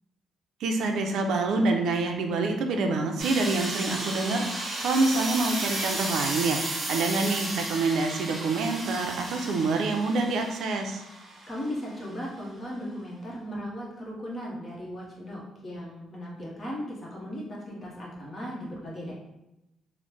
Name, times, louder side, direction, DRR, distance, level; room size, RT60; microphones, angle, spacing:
voice 1, 0.6-11.0, right 3 dB, 75° right, 4 dB, 0.4 m, -27 dB
sound 1, 3.2-11.8, right 2 dB, 30° right, 0.8 m, -34 dB
voice 2, 11.5-19.1, equal, 30° left, -4 dB, 0.9 m, -37 dB
3.1 x 2.0 x 3.2 m, 0.90 s
cardioid pair, 125°, 0 cm